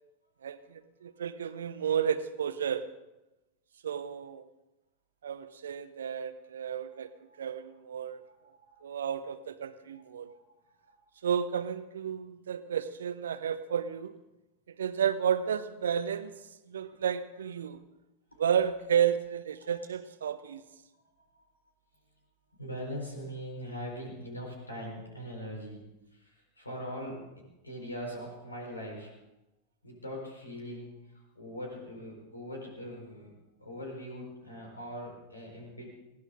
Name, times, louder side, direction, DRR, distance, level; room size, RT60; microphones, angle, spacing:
voice 1, 0.4-2.8 3.8-4.5 5.2-7.1 7.4-8.2 8.8-10.3 11.2-14.2 14.7-16.3 16.7-17.8 18.4-20.6, right 8 dB, 65° right, 13 dB, 0.9 m, -32 dB
voice 2, 8.2-9.1 10.2-10.4 10.8-11.0 19.6-19.7 20.2-20.3 20.9-21.2 22.6-25.8 26.1-27.3 27.6-29.1 29.8-33.3 33.6-35.9, equal, 80° left, 0 dB, 4.3 m, -42 dB
20.5 x 16.5 x 3.8 m, 0.97 s
figure-of-eight pair, 90°, 0 cm